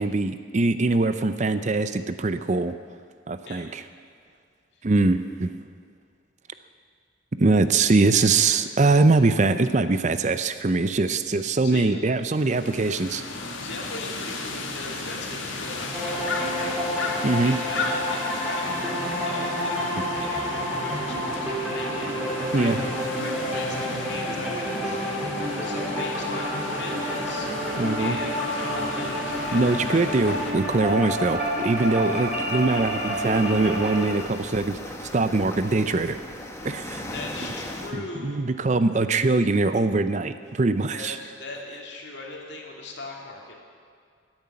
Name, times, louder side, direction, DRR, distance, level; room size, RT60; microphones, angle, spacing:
voice 1, 0.0-2.8 3.3-3.8 4.8-5.5 7.4-13.2 17.2-17.6 22.5-22.8 27.8-28.2 29.5-36.2 36.6-37.0 37.9-41.2, right 3 dB, 40° right, 11 dB, 0.5 m, -22 dB
voice 2, 11.6-12.0 13.6-16.9 17.4-19.8 20.2-22.1 22.5-22.7 23.1-25.2 25.6-27.5 28.0-30.0 37.1-38.4 40.9-43.5, left 2 dB, 65° left, 0 dB, 2.5 m, -39 dB
sound 1, 12.4-30.5, left 3 dB, 85° left, 1.7 m, -35 dB
sound 2, 15.9-34.1, equal, 5° right, 3.6 m, -29 dB
sound 3, 29.3-37.9, left 1 dB, 15° left, 1.2 m, -39 dB
14.0 x 8.9 x 9.6 m, 2.2 s
head